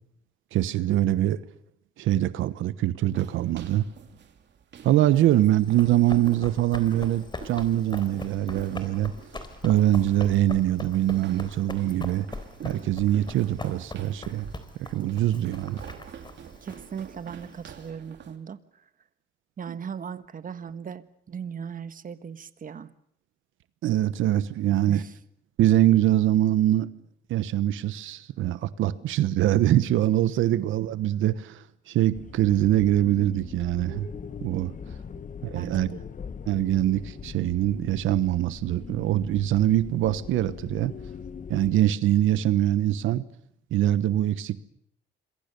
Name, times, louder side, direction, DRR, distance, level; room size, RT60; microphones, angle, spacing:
voice 1, 0.5-1.4 2.0-3.9 4.8-9.1 9.6-12.3 12.6-14.5 14.8-15.8 19.7-19.8 23.8-25.0 25.6-26.9 27.3-34.1 34.4-34.7 35.4-35.9 36.5-40.9 41.5-43.2 43.7-44.6, right 13 dB, 85° right, 1.1 m, -23 dB
sound 1, 3.0-18.4, right 7 dB, 60° right, 2.9 m, -46 dB
Run, 5.6-17.9, left 3 dB, 25° left, 3.7 m, -41 dB
voice 2, 16.6-18.6 19.6-22.9 24.9-25.1 35.1-35.3 35.5-36.0, right 7 dB, 45° right, 1.4 m, -38 dB
sound 2, 32.1-41.8, left 6 dB, 40° left, 1.2 m, -41 dB
26.5 x 22.5 x 6.8 m
cardioid pair, 90°, 20 cm